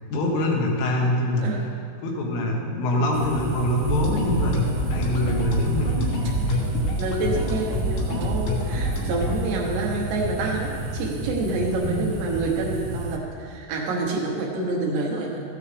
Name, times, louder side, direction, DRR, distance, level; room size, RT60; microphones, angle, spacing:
voice 1, 0.1-1.5 2.0-4.6 4.9-6.1 6.4-6.7 11.9-12.0, left 1 dB, 85° left, -1 dB, 3.9 m, -24 dB
sound 1, 3.1-13.2, right 2 dB, 90° right, 3.5 m, -32 dB
sound 2, 3.8-9.3, left 1 dB, 70° left, 2.0 m, -27 dB
voice 2, 7.0-15.4, right 2 dB, 70° right, -2 dB, 3.0 m, -27 dB
14.5 x 9.4 x 3.4 m, 2.4 s
omnidirectional pair, 5.6 m